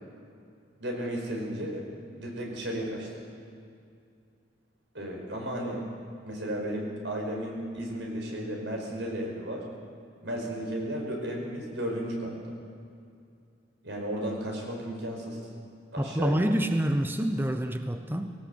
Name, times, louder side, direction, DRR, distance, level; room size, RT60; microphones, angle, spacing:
voice 1, 0.8-1.9 2.1-3.1 4.9-5.8 6.2-9.6 10.2-12.5 13.8-15.4 15.9-16.4, right 1 dB, 80° right, 0 dB, 5.2 m, -34 dB
voice 2, 16.0-18.3, right 1 dB, 10° right, 7 dB, 0.7 m, -27 dB
19.5 x 18.0 x 8.0 m, 2.4 s
head